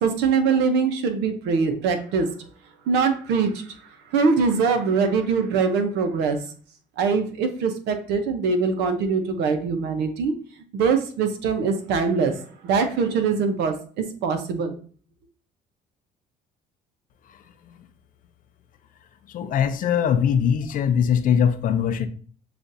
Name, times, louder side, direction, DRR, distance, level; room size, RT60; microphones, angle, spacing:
voice 1, 0.0-2.3 2.9-3.6 4.1-6.4 7.0-10.3 10.7-12.4 12.6-14.7, right 5 dB, 90° right, 6 dB, 0.8 m, -22 dB
voice 2, 19.3-22.1, left 8 dB, 55° left, 10 dB, 0.5 m, -21 dB
6.9 x 2.5 x 2.6 m, 0.44 s
cardioid pair, 110°, 17 cm